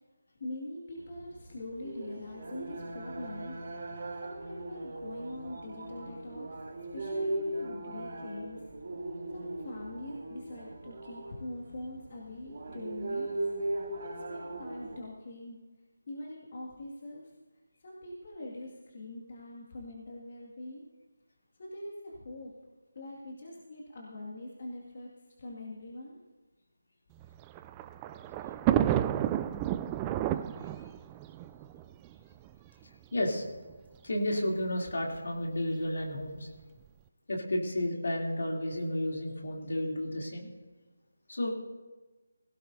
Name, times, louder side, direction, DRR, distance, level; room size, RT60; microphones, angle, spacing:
voice 1, 0.4-3.6 3.9-6.6 6.9-8.6 9.3-13.5 14.0-15.6 16.1-17.4 17.8-20.9 21.6-22.5 22.9-25.1 25.4-26.2, left 1 dB, 45° left, -3 dB, 2.2 m, -43 dB
sound 1, 1.0-15.0, right 1 dB, 45° right, 2.5 m, -39 dB
Thunder, 27.2-32.5 33.4-33.5 33.7-33.8 34.9-35.2, right 12 dB, 15° right, 0.3 m, -31 dB
voice 2, 33.1-33.4 34.0-36.5 37.3-40.5 41.3-41.5, left 1 dB, 60° left, -1 dB, 3.1 m, -32 dB
17.5 x 17.0 x 2.8 m, 1.2 s
figure-of-eight pair, 155°, 0 cm